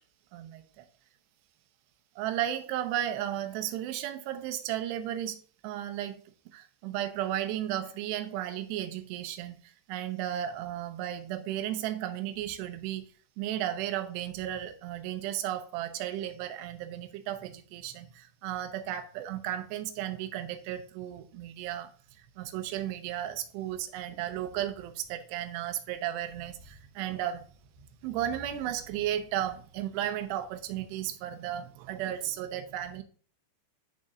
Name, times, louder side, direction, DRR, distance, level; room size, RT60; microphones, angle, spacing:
voice 1, 0.3-0.9 2.2-6.2 6.5-13.1 13.4-21.9 22.2-27.4 28.0-33.0, right 11 dB, 75° right, 2.9 m, -34 dB
14.0 x 5.2 x 2.5 m
omnidirectional pair, 5.2 m